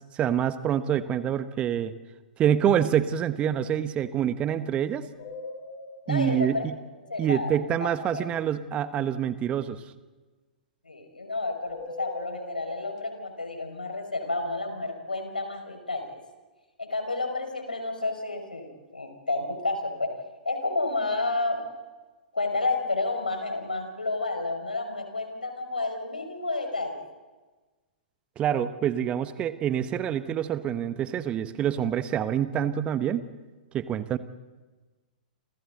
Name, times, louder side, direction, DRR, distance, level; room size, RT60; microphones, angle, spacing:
voice 1, 0.1-1.9 2.4-5.1 6.1-6.8 7.2-9.8 28.4-33.3 33.7-34.2, right 9 dB, 25° right, 12 dB, 1.2 m, -26 dB
sound 1, 5.1-7.6 11.6-13.3, left 3 dB, 45° left, 5.9 m, -42 dB
voice 2, 6.1-6.6 7.1-7.9 8.1-8.3 10.9-16.0 16.8-20.1 20.4-21.6 22.3-27.0, left 2 dB, 80° left, 5 dB, 5.7 m, -30 dB
29.5 x 28.0 x 4.0 m, 1.2 s
figure-of-eight pair, 110°, 5 cm